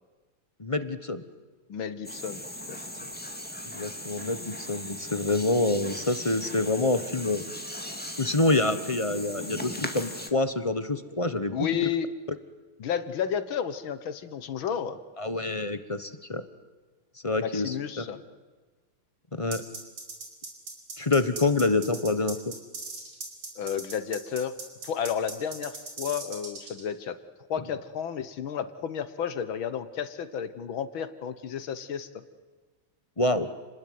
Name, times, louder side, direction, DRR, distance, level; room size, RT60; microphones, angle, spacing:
voice 1, 0.6-1.2 3.7-7.4 8.2-11.7 15.2-16.4 17.2-18.0 19.4-19.6 21.0-22.5 33.2-33.5, left 2 dB, 20° left, 11 dB, 0.9 m, -27 dB
voice 2, 1.7-2.4 2.7-3.2 11.5-12.1 12.8-15.0 17.4-18.2 23.6-24.5 24.8-27.2 27.5-32.2, left 8 dB, 70° left, 12 dB, 1.9 m, -32 dB
sound 1, 2.0-10.3, left 1 dB, 5° left, 1.9 m, -38 dB
sound 2, 19.5-26.8, right 3 dB, 90° right, 5.4 m, -39 dB
29.5 x 20.0 x 9.6 m, 1.4 s
omnidirectional pair, 2.3 m